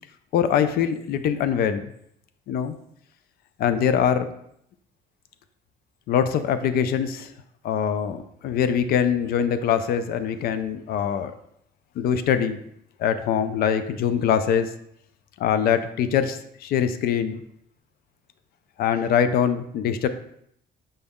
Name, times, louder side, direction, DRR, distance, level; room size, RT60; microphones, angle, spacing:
voice 1, 0.3-1.9 2.5-2.8 3.6-4.3 6.1-7.3 7.6-11.3 12.0-12.6 13.0-14.7 15.4-17.4 18.8-20.1, left 8 dB, 65° left, 11 dB, 0.4 m, -23 dB
5.3 x 2.3 x 3.5 m, 0.72 s
cardioid pair, 110°, 17 cm